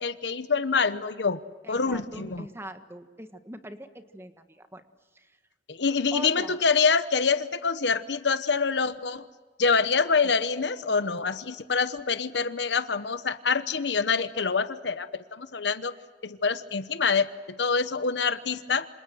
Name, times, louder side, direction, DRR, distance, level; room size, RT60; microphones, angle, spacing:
voice 1, 0.0-1.4 1.7-2.5 5.7-9.2 9.6-15.9 16.2-18.9, left 5 dB, 85° left, 12 dB, 1.0 m, -26 dB
voice 2, 1.6-4.8 5.1-5.3 6.1-6.6, right 1 dB, 15° right, 8 dB, 1.6 m, -42 dB
27.0 x 27.0 x 7.8 m, 1.4 s
head